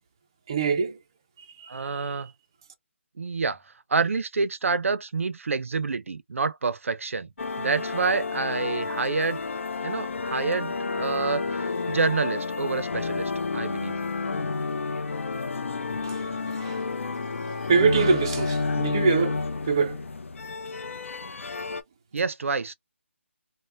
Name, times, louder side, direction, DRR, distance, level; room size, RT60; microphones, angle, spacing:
voice 1, 0.5-1.0 1.6-2.2 16.0-16.2 16.6-16.8 17.7-20.0, right 5 dB, 20° right, 0.3 m, -24 dB
voice 2, 1.7-2.3 3.2-3.6 3.9-7.3 7.6-9.4 9.8-13.9 22.1-22.7, right 4 dB, 75° right, 0.5 m, -28 dB
sound 1, 7.4-21.8, left 4 dB, 70° left, 0.5 m, -30 dB
3.2 x 2.0 x 2.5 m
hypercardioid pair, 175°, 7 cm